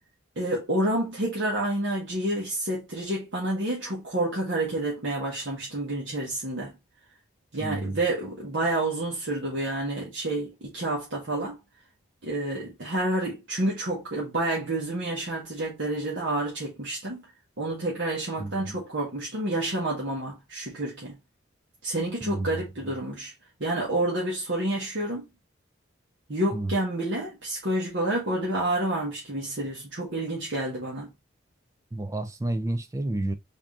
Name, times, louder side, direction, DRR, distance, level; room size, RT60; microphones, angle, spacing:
voice 1, 0.4-6.7 7.5-11.6 12.2-17.2 17.6-21.1 21.8-23.3 23.6-25.2 26.3-31.1, right 1 dB, 70° right, 1.2 m, -29 dB
voice 2, 7.6-8.0 18.4-18.8 22.2-22.6 26.5-26.7 31.9-33.3, right 2 dB, 15° right, 0.3 m, -30 dB
3.5 x 2.7 x 3.5 m
head